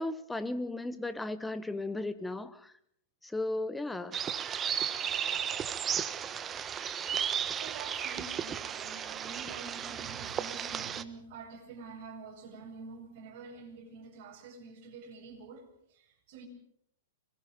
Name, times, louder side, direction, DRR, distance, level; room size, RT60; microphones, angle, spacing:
voice 1, 0.0-2.7 3.2-4.2, left 2 dB, 5° left, 13 dB, 1.4 m, -35 dB
sound 1, 4.1-11.0, right 8 dB, 25° right, 1.3 m, -34 dB
voice 2, 7.6-15.7 15.9-16.5, right 5 dB, 50° right, 2 dB, 7.6 m, -47 dB
25.5 x 21.5 x 5.3 m, 0.67 s
hypercardioid pair, 110°, 0 cm